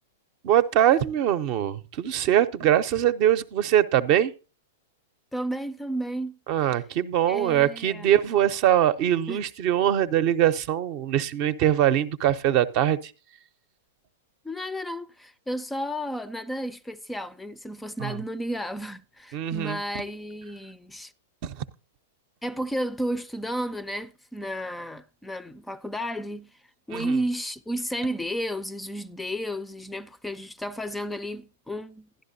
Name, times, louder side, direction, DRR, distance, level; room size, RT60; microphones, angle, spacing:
voice 1, 0.4-4.3 6.5-13.0 18.0-18.2 19.3-19.8 21.4-21.5 26.9-27.1, right 11 dB, 45° right, 0.6 m, -22 dB
voice 2, 5.3-6.4 7.3-8.1 9.3-9.4 14.4-21.1 22.4-26.5 26.9-32.1, equal, 5° left, 0.4 m, -32 dB
11.5 x 11.0 x 2.7 m
hypercardioid pair, 105°, 0 cm